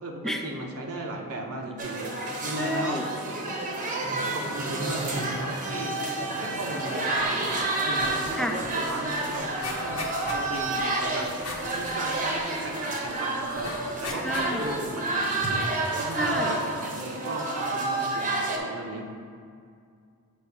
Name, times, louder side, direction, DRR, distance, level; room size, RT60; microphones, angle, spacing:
voice 1, 0.0-3.6 4.2-6.0 6.3-11.3 11.7-19.1, right 2 dB, 70° right, 1 dB, 0.7 m, -36 dB
sound 1, 1.8-18.6, right 2 dB, 35° right, 0.8 m, -29 dB
voice 2, 2.6-3.0 8.4-8.6 14.2-14.6 16.2-16.6, equal, ahead, 4 dB, 0.3 m, -30 dB
sound 2, 7.4-7.6 7.9-8.2 8.6-8.7 9.0-12.9 13.5-14.8 15.3-15.4, left 2 dB, 75° left, 1.0 m, -39 dB
8.3 x 3.1 x 4.5 m, 2.2 s
head